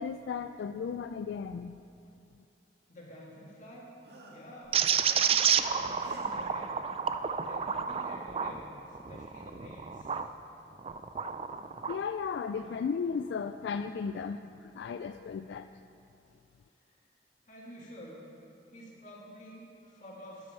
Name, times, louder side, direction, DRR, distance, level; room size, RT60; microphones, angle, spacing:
voice 1, 0.0-1.8 11.9-15.7, left 6 dB, 80° left, 9 dB, 0.3 m, -35 dB
voice 2, 2.9-3.9 4.3-6.8 7.4-10.1 16.8-16.9 17.4-18.3 18.7-20.5, equal, 45° left, -4 dB, 2.4 m, -49 dB
sound 1, 4.0-4.6 6.0-6.5 7.9-8.0 8.4-8.7, right 1 dB, 75° right, 1.8 m, -51 dB
sound 2, 4.7-10.3 10.8-12.0, right 7 dB, 35° right, 0.4 m, -30 dB
12.5 x 10.5 x 4.5 m, 2.7 s
head